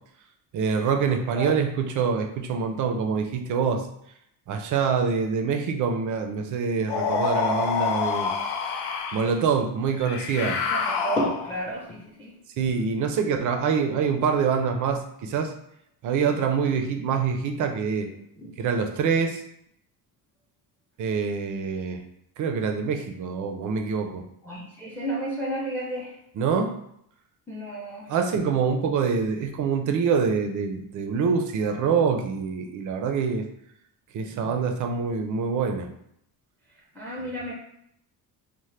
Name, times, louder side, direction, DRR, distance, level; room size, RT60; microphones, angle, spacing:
voice 1, 0.5-3.9 4.5-8.3 9.1-10.6 12.6-15.5 16.0-18.1 18.6-19.4 21.0-22.0 22.4-24.3 26.4-26.7 28.1-33.5 34.1-35.9, right 6 dB, 50° right, 5 dB, 0.5 m, -25 dB
sound 1, 6.9-9.3 10.0-11.7, left 6 dB, 85° left, 0.5 m, -27 dB
voice 2, 10.7-12.3 18.4-18.6 24.4-26.1 27.5-28.1 37.0-37.5, right 1 dB, 5° left, -4 dB, 0.5 m, -31 dB
2.8 x 2.1 x 3.2 m, 0.74 s
cardioid pair, 150°, 39 cm